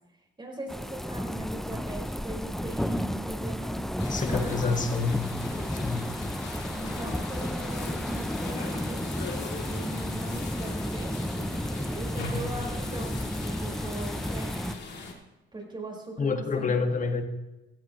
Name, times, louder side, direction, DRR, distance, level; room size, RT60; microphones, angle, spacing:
voice 1, 0.4-4.9 5.4-6.1 6.7-11.5 11.9-14.7 15.5-16.8, right 2 dB, 25° right, -1 dB, 4.8 m, -40 dB
sound 1, 0.7-14.8, equal, ahead, 0.5 m, -32 dB
sound 2, 4.0-15.1, left 4 dB, 60° left, 2.8 m, -40 dB
voice 2, 4.1-5.3 5.7-6.1 16.2-17.2, left 4 dB, 40° left, 5 dB, 1.7 m, -28 dB
16.5 x 13.5 x 3.1 m, 1.0 s
cardioid pair, 90°, 20 cm